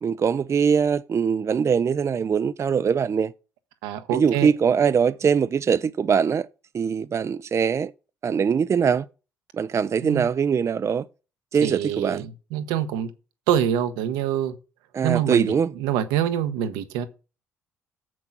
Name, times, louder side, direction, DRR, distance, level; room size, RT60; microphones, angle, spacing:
voice 1, 0.0-3.3 4.1-6.5 6.7-7.9 8.2-9.0 9.6-11.0 11.5-12.2 14.9-15.7, right 6 dB, 40° right, 0.5 m, -22 dB
voice 2, 3.8-4.5 10.0-10.3 11.6-13.1 13.5-14.6 15.0-17.1, right 10 dB, 80° right, 0.9 m, -25 dB
7.3 x 6.1 x 6.0 m
hypercardioid pair, 50°, 7 cm